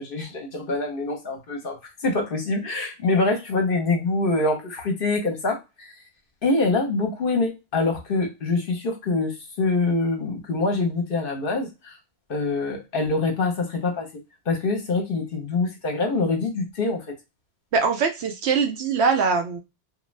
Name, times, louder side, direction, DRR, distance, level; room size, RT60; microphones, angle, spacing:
voice 1, 0.0-1.8 2.0-5.9 6.4-12.0 12.3-14.1 14.5-17.0, left 3 dB, 55° left, 3 dB, 0.9 m, -25 dB
voice 2, 17.7-19.6, right 5 dB, 70° right, 6 dB, 0.8 m, -22 dB
2.5 x 2.2 x 3.1 m, 0.25 s
omnidirectional pair, 1.2 m